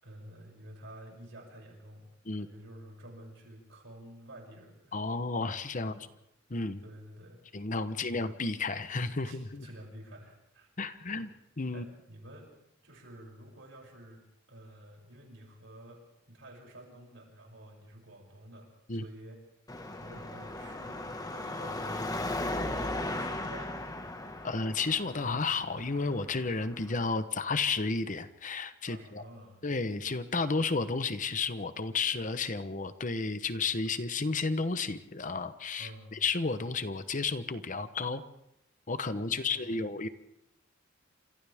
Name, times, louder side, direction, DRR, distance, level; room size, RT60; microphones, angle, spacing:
voice 1, 0.0-2.1 2.3-4.9 5.8-6.1 6.8-7.4 7.9-8.3 9.2-10.7 11.0-11.3 11.7-12.5 12.8-14.2 14.5-16.0 16.3-19.4 20.0-24.2 28.9-29.6 35.8-36.1 39.3-39.9, right 1 dB, 65° right, 0 dB, 7.1 m, -50 dB
voice 2, 4.9-6.1 6.5-6.8 7.5-9.7 10.8-11.3 11.6-11.8 18.9-19.0 24.4-29.2 29.6-38.2 38.9-40.1, left 4 dB, 40° left, 11 dB, 1.0 m, -32 dB
Car passing by / Traffic noise roadway noise / Engine, 19.7-27.0, left 2 dB, 20° left, 1.6 m, -37 dB
29.5 x 26.5 x 3.6 m, 0.80 s
head